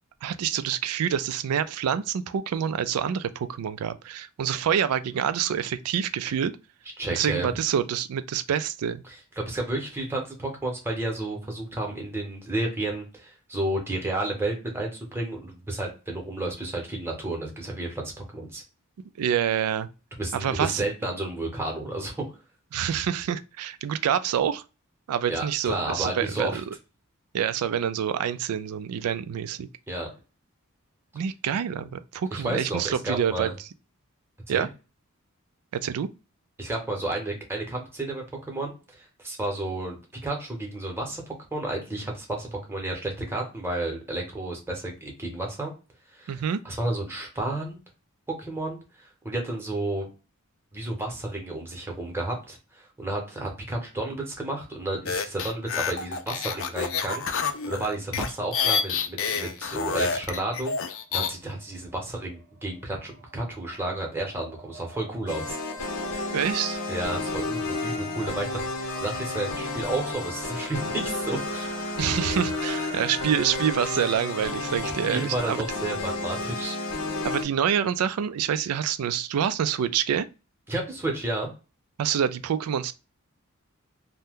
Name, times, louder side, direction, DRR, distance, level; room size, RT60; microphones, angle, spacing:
voice 1, 0.2-6.5 7.1-9.0 19.2-19.9 20.3-20.8 22.7-24.6 25.1-26.6 27.3-29.7 31.1-33.5 34.5-34.7 35.7-36.1 46.3-46.6 66.3-66.8 72.0-75.6 77.2-80.3 82.0-82.9, right 8 dB, 85° right, 0.3 m, -27 dB
voice 2, 7.0-7.6 9.4-18.6 20.2-22.3 25.3-26.6 29.9-30.1 32.3-33.5 34.5-34.7 36.6-45.7 46.1-47.8 48.4-50.1 50.7-65.6 66.9-71.7 74.8-76.7 80.7-81.5, right 2 dB, 10° right, 0.8 m, -32 dB
sound 1, 55.1-61.3, left 6 dB, 60° left, 0.4 m, -28 dB
sound 2, 61.1-73.7, right 3 dB, 40° right, 0.7 m, -44 dB
sound 3, 65.3-77.4, left 3 dB, 85° left, 0.8 m, -32 dB
2.7 x 2.1 x 3.4 m
head